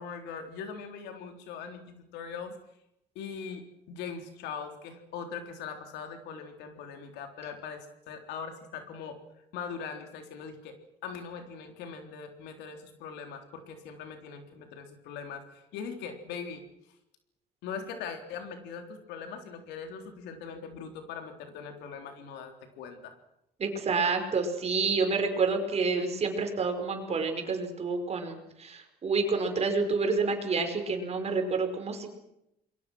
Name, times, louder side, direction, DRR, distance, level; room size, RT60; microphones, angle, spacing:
voice 1, 0.0-2.6 3.2-9.2 9.5-10.8 11.0-16.6 17.6-23.1, left 6 dB, 90° left, 5 dB, 3.8 m, -41 dB
voice 2, 23.6-32.1, right 4 dB, 40° right, 5 dB, 5.3 m, -28 dB
28.0 x 22.5 x 6.3 m, 0.83 s
cardioid pair, 110°, 17 cm